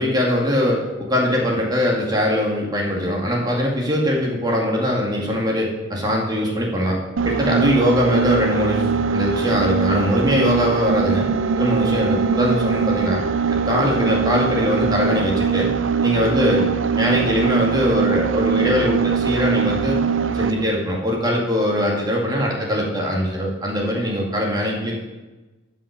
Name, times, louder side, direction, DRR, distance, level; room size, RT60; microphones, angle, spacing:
voice 1, 0.0-7.0 7.2-11.3 11.6-13.2 13.5-15.7 16.0-16.6 17.0-20.0 20.3-25.0, equal, 20° right, -1 dB, 2.2 m, -21 dB
sound 1, 7.2-20.7, right 6 dB, 75° right, 0.5 m, -22 dB
12.0 x 5.8 x 6.6 m, 1.2 s
head